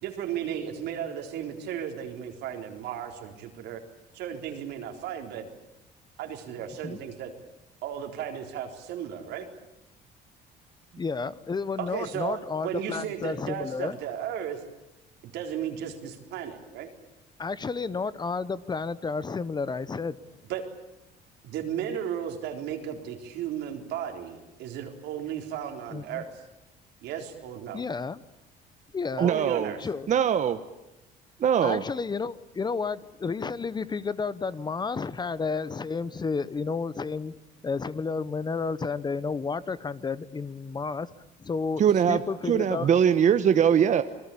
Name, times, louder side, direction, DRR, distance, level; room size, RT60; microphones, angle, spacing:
voice 1, 0.0-3.8 4.1-5.5 6.2-7.3 7.8-9.5 11.8-14.6 15.2-16.9 20.5-20.7 21.4-26.4 27.0-27.8 29.2-29.8, right 9 dB, 85° right, 4 dB, 4.0 m, -35 dB
voice 2, 11.0-14.0 17.4-20.2 25.9-26.2 27.7-28.2 28.9-29.3 29.8-30.1 31.6-37.3 37.6-41.1 41.4-41.8 42.1-42.9, left 4 dB, 25° left, 17 dB, 0.9 m, -31 dB
voice 3, 29.2-29.7 30.1-30.6 31.4-31.8 41.8-42.2 42.5-44.0, right 8 dB, 45° right, 10 dB, 1.1 m, -21 dB
27.0 x 20.0 x 8.6 m, 0.94 s
cardioid pair, 110°, 17 cm